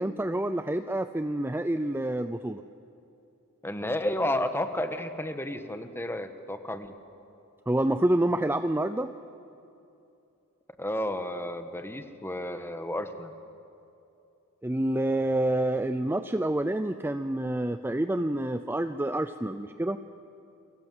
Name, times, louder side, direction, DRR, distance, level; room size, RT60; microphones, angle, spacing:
voice 1, 0.0-2.6 7.7-9.1 14.6-20.0, right 1 dB, 10° right, 10 dB, 0.5 m, -28 dB
voice 2, 3.6-6.9 10.8-13.3, left 1 dB, 10° left, 8 dB, 1.4 m, -32 dB
29.5 x 22.5 x 7.9 m, 2.7 s
head